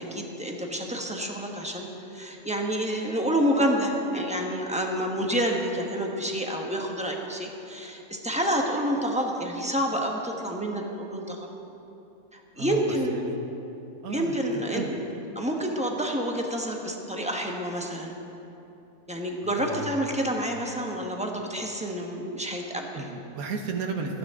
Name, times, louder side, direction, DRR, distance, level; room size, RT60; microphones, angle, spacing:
voice 1, 0.0-11.5 12.3-13.2 14.1-15.0 15.3-18.2 19.1-23.0, equal, 5° right, 0 dB, 1.2 m, -28 dB
voice 2, 12.5-13.4 14.0-14.9 19.4-20.1 23.0-24.2, right 4 dB, 90° right, 3 dB, 1.6 m, -34 dB
27.5 x 9.4 x 3.7 m, 3.0 s
omnidirectional pair, 1.5 m